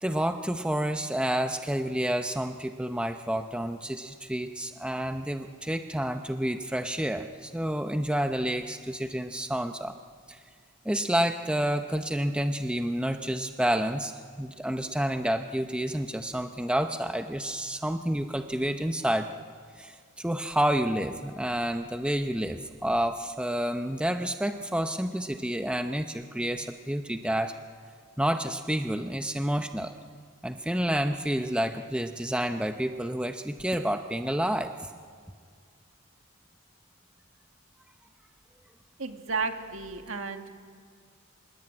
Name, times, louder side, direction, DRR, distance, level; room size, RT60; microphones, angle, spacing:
voice 1, 0.0-10.0 10.3-10.4 10.8-19.3 19.8-27.5 28.2-29.9 30.4-34.9, right 1 dB, 5° right, 6 dB, 0.6 m, -29 dB
voice 2, 39.0-40.5, right 4 dB, 65° right, 5 dB, 1.9 m, -33 dB
26.5 x 19.5 x 8.8 m, 2.1 s
head